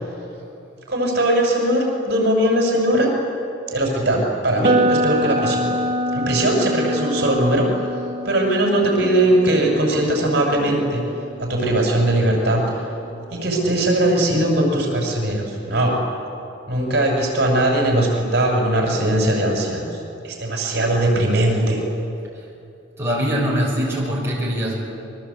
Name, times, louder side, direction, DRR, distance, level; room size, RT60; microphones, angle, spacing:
voice 1, 0.9-3.1 3.7-5.7 6.1-7.7 8.2-11.0 11.4-12.6 13.3-16.0 16.7-20.0 20.2-21.8, right 1 dB, 55° right, 0 dB, 6.4 m, -19 dB
sound 1, 4.6-12.6, equal, 35° right, 0.9 m, -26 dB
voice 2, 23.0-24.8, equal, 15° right, -4 dB, 6.3 m, -22 dB
28.0 x 23.0 x 8.5 m, 2.7 s
head